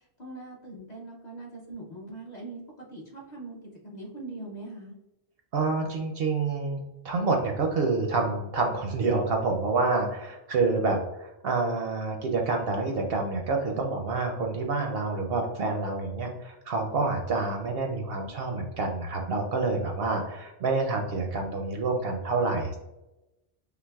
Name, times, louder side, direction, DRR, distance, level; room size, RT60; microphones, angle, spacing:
voice 1, 0.2-2.6 2.9-3.6 3.9-4.9, right 2 dB, 45° left, -3 dB, 0.7 m, -41 dB
voice 2, 5.5-6.8 7.0-22.8, right 3 dB, 65° right, 2 dB, 0.7 m, -28 dB
5.6 x 2.0 x 2.2 m, 0.95 s
omnidirectional pair, 1.3 m